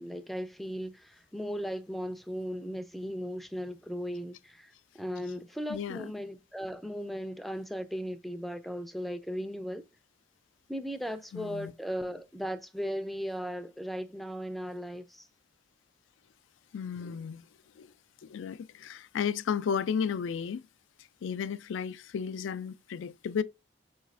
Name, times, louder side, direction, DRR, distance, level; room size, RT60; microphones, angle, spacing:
voice 1, 0.0-9.8 10.7-15.3, equal, ahead, 0.4 m, -37 dB
voice 2, 5.7-6.1 11.3-11.7 16.7-17.4 17.8-17.9 18.2-20.6 21.2-23.4, left 7 dB, 90° left, 0.3 m, -33 dB
4.8 x 3.1 x 2.4 m
head